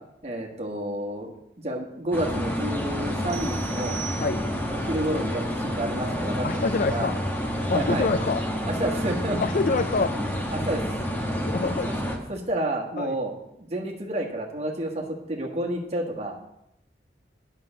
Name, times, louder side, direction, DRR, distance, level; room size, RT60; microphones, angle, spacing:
voice 1, 0.2-1.3 1.6-4.0 4.7-6.4 6.9-7.1 7.7-8.1 8.7-9.4 10.5-10.8 11.9-12.0 12.3-16.4, right 1 dB, 35° right, 0 dB, 1.6 m, -30 dB
sound 1, 2.1-12.2, equal, 10° left, 1.1 m, -29 dB
sound 2, 3.3-4.8, right 9 dB, 70° right, 1.1 m, -39 dB
voice 2, 6.4-7.2 7.7-8.4 9.4-10.3 11.4-11.9 13.0-13.1, left 3 dB, 45° left, 10 dB, 0.4 m, -26 dB
9.7 x 5.6 x 6.6 m, 0.84 s
head